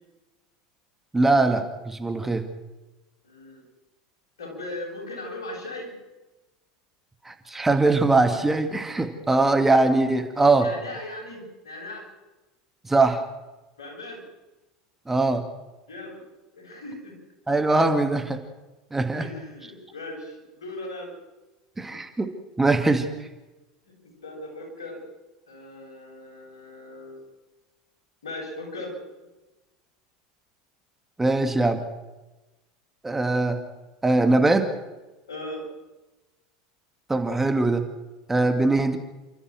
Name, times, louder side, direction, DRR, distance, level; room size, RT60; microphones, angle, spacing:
voice 1, 1.1-2.5 7.3-10.7 12.8-13.2 15.1-15.4 17.5-18.4 18.9-19.3 21.8-22.3 22.6-23.1 31.2-31.8 33.0-33.6 34.0-34.7 37.1-37.9 38.3-39.0, right 2 dB, 10° right, 6 dB, 2.4 m, -21 dB
voice 2, 3.2-3.6 4.4-5.9 10.6-12.1 13.8-14.3 15.9-16.2 16.5-17.2 19.2-21.1 24.0-25.0 25.5-27.2 28.2-28.9 35.3-35.6, left 2 dB, 80° left, 1 dB, 7.8 m, -38 dB
29.5 x 14.0 x 6.4 m, 1.1 s
hypercardioid pair, 85°, 2 cm